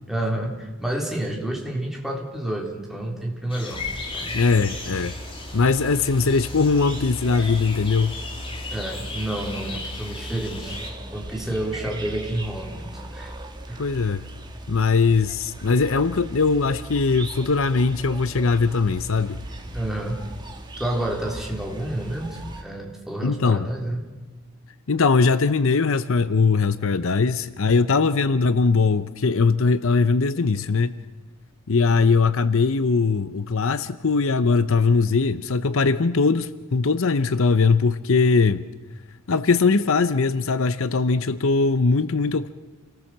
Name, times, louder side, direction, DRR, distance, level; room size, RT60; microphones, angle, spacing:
voice 1, 0.1-3.8 4.1-4.3 8.7-13.3 13.7-13.8 19.7-20.2 20.8-24.0, right 1 dB, ahead, 3.4 m, -29 dB
sound 1, 3.5-10.9, left 3 dB, 25° left, 2.8 m, -37 dB
sound 2, 3.7-22.6, right 1 dB, 20° right, 2.1 m, -38 dB
voice 2, 4.3-5.1 5.5-8.2 13.8-14.2 14.7-19.4 23.2-23.7 24.9-31.0 31.7-38.6 39.3-42.5, left 4 dB, 60° left, 0.7 m, -20 dB
28.5 x 18.5 x 7.4 m
head